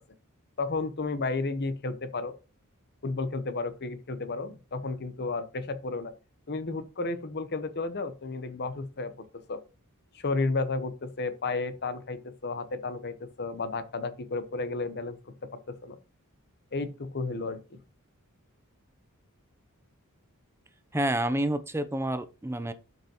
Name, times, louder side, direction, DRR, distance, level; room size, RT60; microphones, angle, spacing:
voice 1, 0.6-2.3 3.0-6.1 6.5-9.6 10.1-15.2 15.8-16.0 16.7-17.8, left 3 dB, 50° left, 0.9 m, -32 dB
voice 2, 20.9-22.7, right 1 dB, 10° right, 0.6 m, -29 dB
12.0 x 5.4 x 3.0 m
head